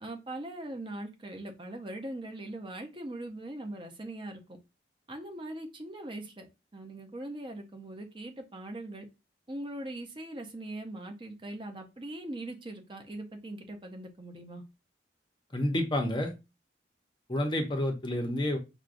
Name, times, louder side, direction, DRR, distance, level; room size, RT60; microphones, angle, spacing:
voice 1, 0.0-4.4 5.1-6.5 6.7-9.1 9.5-14.6, right 1 dB, 25° right, 0.5 m, -41 dB
voice 2, 15.5-16.3 17.3-18.6, left 1 dB, 25° left, 0.6 m, -29 dB
6.0 x 2.2 x 2.5 m
head